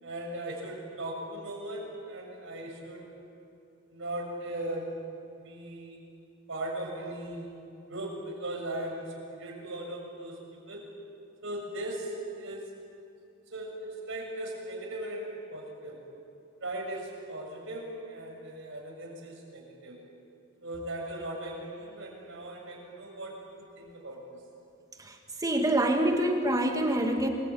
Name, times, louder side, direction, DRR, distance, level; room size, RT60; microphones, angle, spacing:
voice 1, 0.0-3.1 3.9-5.0 5.3-6.0 6.5-7.5 7.9-10.9 11.4-12.7 13.5-16.0 16.6-20.0 20.6-24.4, right 1 dB, 65° right, 0 dB, 7.1 m, -38 dB
voice 2, 25.0-27.3, right 1 dB, 15° right, 3 dB, 2.2 m, -26 dB
28.5 x 21.5 x 9.2 m, 2.6 s
head